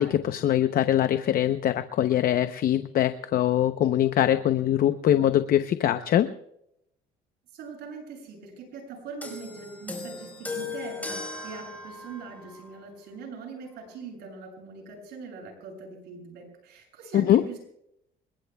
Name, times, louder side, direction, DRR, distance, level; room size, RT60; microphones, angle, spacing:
voice 1, 0.0-6.3 17.1-17.4, left 11 dB, 60° left, 10 dB, 0.8 m, -23 dB
voice 2, 7.5-17.6, right 4 dB, 80° right, 1 dB, 7.8 m, -42 dB
sound 1, 9.2-12.8 13.7-13.9, left 3 dB, 10° left, 5.1 m, -38 dB
27.5 x 22.0 x 2.3 m, 0.77 s
cardioid pair, 110°, 17 cm